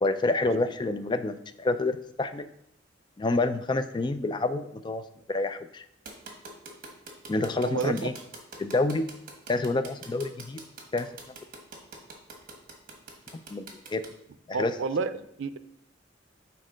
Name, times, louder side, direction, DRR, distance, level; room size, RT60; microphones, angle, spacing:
voice 1, 0.0-2.5 3.2-5.8 7.3-8.1 8.6-9.1 9.5-10.6 10.9-11.1 13.5-14.0 14.5-14.7, left 2 dB, 25° left, 11 dB, 0.3 m, -28 dB
sound 1, 6.1-14.1, right 3 dB, 45° right, 1.2 m, -44 dB
voice 2, 7.6-8.1 14.5-15.6, right 4 dB, 85° right, 12 dB, 0.4 m, -31 dB
6.5 x 4.1 x 5.0 m, 0.74 s
head